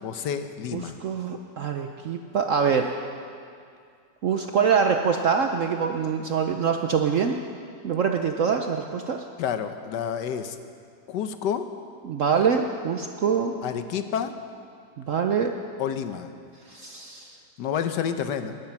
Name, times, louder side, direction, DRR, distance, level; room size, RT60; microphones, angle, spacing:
voice 1, 0.0-1.0 9.4-10.6 11.1-11.7 13.6-14.3 15.8-16.3 17.6-18.6, left 8 dB, 70° left, 9 dB, 1.4 m, -29 dB
voice 2, 0.7-2.9 4.2-7.4 7.8-9.3 12.0-13.6 15.0-15.6 16.7-17.4, right 6 dB, 65° right, 5 dB, 0.8 m, -24 dB
19.0 x 11.0 x 5.9 m, 2.3 s
omnidirectional pair, 2.0 m